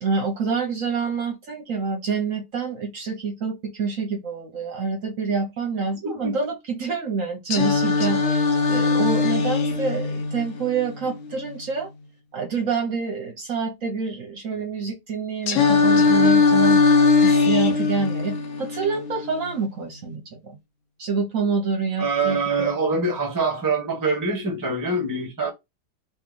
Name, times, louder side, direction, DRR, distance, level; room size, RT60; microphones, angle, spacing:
voice 1, 0.0-11.9 12.3-16.8 17.2-20.6 21.0-22.7, right 5 dB, 55° right, 1.0 m, -27 dB
Singing, 7.5-11.5 15.5-19.5, left 4 dB, 60° left, 0.9 m, -20 dB
voice 2, 22.0-25.5, right 3 dB, 15° right, 0.8 m, -24 dB
3.0 x 3.0 x 3.7 m
omnidirectional pair, 1.9 m